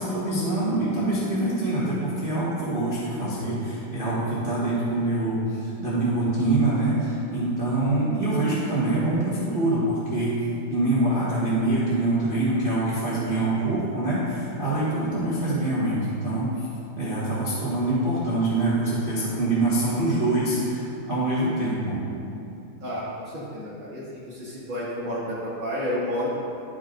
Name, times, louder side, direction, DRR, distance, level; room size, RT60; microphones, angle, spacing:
voice 1, 0.0-10.4 10.7-16.7 17.0-22.0, right 2 dB, 85° right, -10 dB, 0.4 m, -25 dB
voice 2, 22.8-26.3, equal, 50° right, -9 dB, 1.7 m, -31 dB
11.0 x 6.9 x 2.6 m, 2.7 s
omnidirectional pair, 3.9 m